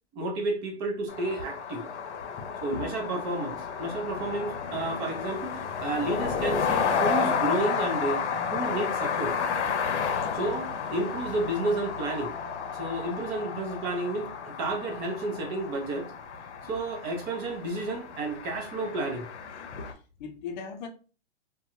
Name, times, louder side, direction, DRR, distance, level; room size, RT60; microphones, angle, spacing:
voice 1, 0.1-1.8 2.6-9.3 10.3-12.3 12.7-16.1 16.7-19.3, right 2 dB, 30° right, 2 dB, 0.7 m, -31 dB
sound 1, 1.1-19.9, left 6 dB, 85° left, 0.6 m, -32 dB
voice 2, 2.4-2.8 10.2-10.5 19.7-20.9, left 5 dB, 45° left, 4 dB, 0.7 m, -40 dB
2.4 x 2.3 x 2.9 m, 0.36 s
hypercardioid pair, 135°, 34 cm